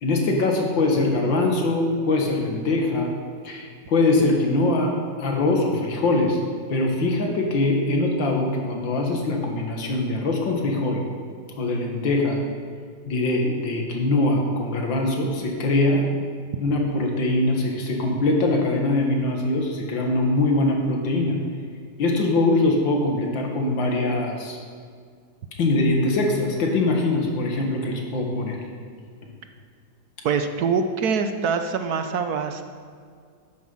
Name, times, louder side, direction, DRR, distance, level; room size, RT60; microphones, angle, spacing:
voice 1, 0.0-3.1 3.4-6.4 6.7-11.0 11.6-12.4 13.1-16.1 16.6-21.4 22.0-24.6 25.6-28.6 29.2-29.3, left 2 dB, 90° left, 1 dB, 2.4 m, -22 dB
voice 2, 30.2-32.6, right 5 dB, 65° right, 8 dB, 1.1 m, -24 dB
12.0 x 9.8 x 5.6 m, 2.1 s
omnidirectional pair, 2.0 m